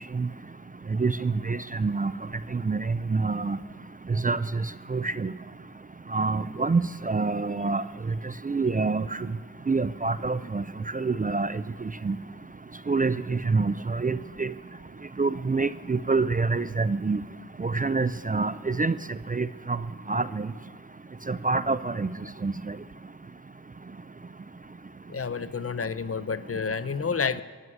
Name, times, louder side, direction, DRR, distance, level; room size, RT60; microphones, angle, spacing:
voice 1, 1.0-2.1 2.5-3.6 4.2-4.4 4.9-5.3 6.1-7.8 8.5-9.0 9.7-10.6 10.9-11.5 12.0-12.2 12.9-14.5 15.2-17.2 17.6-18.9 19.3-19.8 20.1-20.5 21.3-22.1 22.4-22.5, right 4 dB, 25° right, 15 dB, 0.4 m, -26 dB
voice 2, 25.1-27.4, left 5 dB, 40° left, 14 dB, 0.7 m, -29 dB
15.0 x 9.4 x 9.8 m, 1.5 s
cardioid pair, 55°, 35 cm